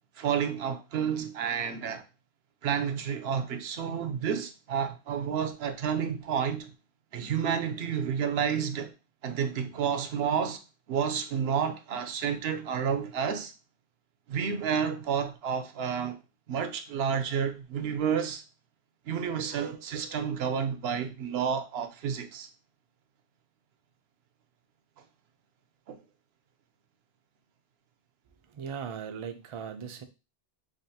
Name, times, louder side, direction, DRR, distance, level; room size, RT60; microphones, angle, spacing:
voice 1, 0.2-2.0 2.6-6.7 7.1-8.9 9.2-10.6 10.9-13.5 14.3-16.2 16.5-18.4 19.1-22.5 25.9-26.0, right 7 dB, 75° right, 0.8 m, -30 dB
voice 2, 28.5-30.0, right 7 dB, 50° right, 0.3 m, -38 dB
5.0 x 2.4 x 2.7 m
omnidirectional pair, 1.1 m